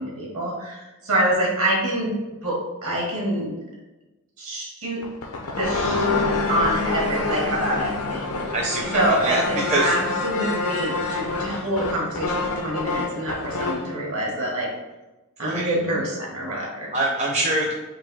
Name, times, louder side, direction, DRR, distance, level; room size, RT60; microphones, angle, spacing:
voice 1, 0.0-2.1 2.4-3.6 4.4-5.0 5.6-6.1 6.5-8.5 8.9-14.7 15.4-16.9, right 1 dB, 70° right, -3 dB, 1.4 m, -26 dB
sound 1, 5.0-13.9, left 3 dB, 80° left, 0.6 m, -26 dB
voice 2, 8.5-10.0 15.4-15.7 16.9-17.7, right 2 dB, 30° right, -3 dB, 0.5 m, -24 dB
3.9 x 2.6 x 3.9 m, 1.1 s
head